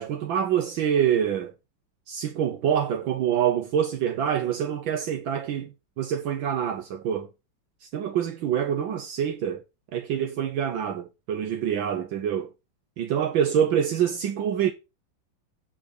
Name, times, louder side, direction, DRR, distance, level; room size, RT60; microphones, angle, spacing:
voice 1, 0.0-1.5 2.1-7.3 7.8-9.6 9.9-12.5 13.0-14.7, right 9 dB, 75° right, 1.6 m, -26 dB
9.1 x 5.0 x 6.5 m
omnidirectional pair, 2.2 m